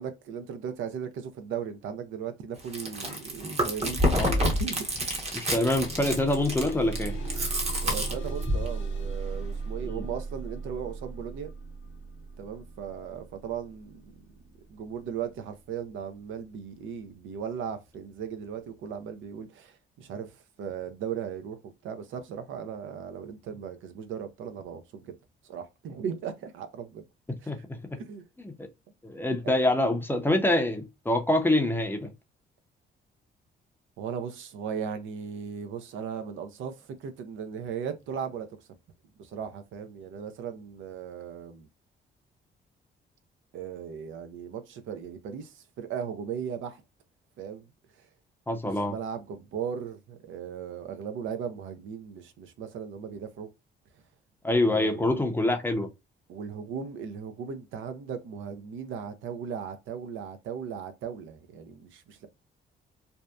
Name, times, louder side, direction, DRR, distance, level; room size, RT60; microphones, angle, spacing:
voice 1, 0.0-5.1 7.8-11.5 12.4-14.1 14.7-25.1 25.4-27.0 27.4-27.5 28.0-28.2 29.4-29.5 34.0-38.7 39.2-41.7 43.5-46.8 47.4-47.7 48.6-53.5 54.7-55.2 56.3-62.3, right 7 dB, 80° right, 0.5 m, -37 dB
Chewing mastication, 2.6-8.7, equal, 30° right, 0.9 m, -28 dB
sound 1, 5.3-16.0 16.8-16.9 17.4-17.5, right 3 dB, 80° left, 0.6 m, -37 dB
voice 2, 5.3-7.2 9.8-10.0 27.5-28.0 28.4-28.7 29.0-32.1 48.5-49.0 54.4-55.9, left 1 dB, 10° left, 0.5 m, -26 dB
2.7 x 2.1 x 2.2 m
cardioid pair, 90°, 20 cm